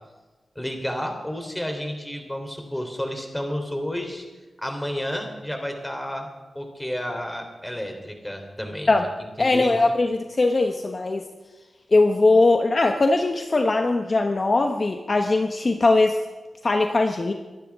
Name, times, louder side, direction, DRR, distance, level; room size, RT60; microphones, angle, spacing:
voice 1, 0.6-4.3 4.6-6.3 6.6-8.9 9.2-9.8, equal, 10° left, 3 dB, 3.5 m, -31 dB
voice 2, 9.4-11.3 11.9-16.2 16.6-17.3, left 2 dB, 45° left, 5 dB, 1.1 m, -20 dB
24.0 x 11.5 x 3.6 m, 1.2 s
cardioid pair, 65°, 0 cm